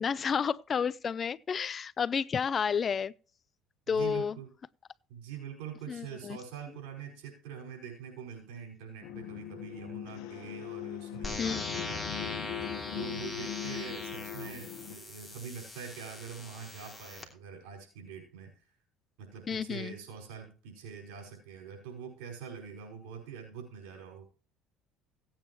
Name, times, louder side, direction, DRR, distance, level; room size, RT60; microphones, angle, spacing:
voice 1, 0.0-3.1 3.9-4.4 5.9-6.4 11.4-11.7 19.5-20.0, left 6 dB, 35° left, 0.4 m, -31 dB
voice 2, 3.9-4.5 5.1-12.5 12.9-18.7 19.2-24.2, right 7 dB, 80° right, 5.5 m, -44 dB
sound 1, 9.0-14.9, left 12 dB, 80° left, 1.4 m, -40 dB
sound 2, 11.2-17.2, left 2 dB, 10° left, 2.8 m, -41 dB
17.0 x 8.9 x 3.1 m
supercardioid pair, 95°, 0 cm